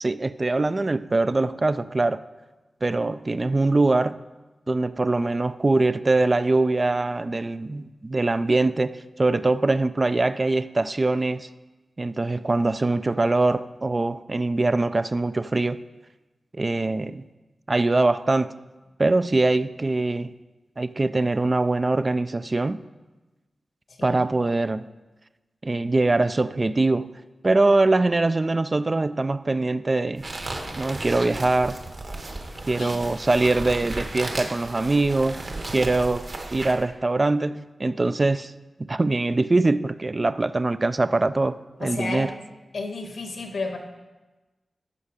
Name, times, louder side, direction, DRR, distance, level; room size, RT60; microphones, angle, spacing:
voice 1, 0.0-2.2 2.8-4.2 4.7-11.5 12.0-15.8 16.6-17.3 17.7-18.5 19.0-20.3 20.8-22.8 24.0-24.9 25.6-27.1 27.4-30.3 30.8-31.8 32.7-36.3 36.5-38.5 38.8-42.3, right 2 dB, 35° right, 13 dB, 0.3 m, -23 dB
voice 2, 23.9-24.2 32.4-33.1 41.8-42.3 42.7-43.8, left 3 dB, 80° left, 4 dB, 1.4 m, -32 dB
sound 1, 30.2-36.8, right 2 dB, 50° right, 1.3 m, -34 dB
13.5 x 5.6 x 5.0 m, 1.2 s
wide cardioid pair, 85°, 0 cm